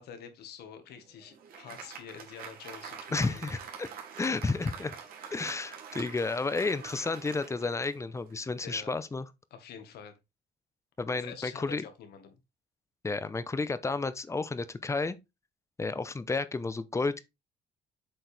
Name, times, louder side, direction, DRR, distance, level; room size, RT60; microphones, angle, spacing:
voice 1, 0.0-3.4 8.6-8.9 9.5-10.2 11.1-12.4, left 7 dB, 75° left, 1.6 m, -47 dB
Applause, 0.9-8.4, right 7 dB, 60° right, 2.5 m, -46 dB
voice 2, 3.1-3.9 4.2-5.0 5.3-9.3 11.0-11.8 13.0-15.2 15.8-17.2, left 3 dB, 15° left, 0.7 m, -31 dB
7.6 x 4.5 x 3.4 m
cardioid pair, 110°, 17 cm